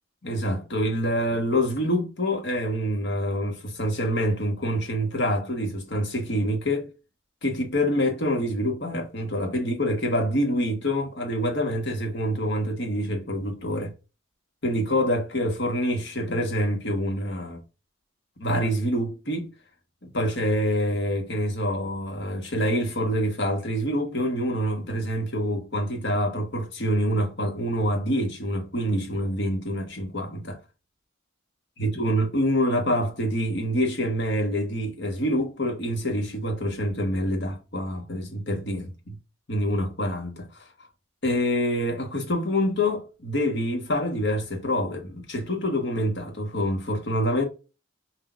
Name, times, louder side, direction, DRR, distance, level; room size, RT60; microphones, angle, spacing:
voice 1, 0.2-6.9 7.4-13.9 14.6-17.6 18.4-19.5 20.0-30.6 31.8-38.9 39.5-40.6 41.2-47.4, equal, 55° left, 1.4 m, -26 dB
6.0 x 2.6 x 2.5 m
head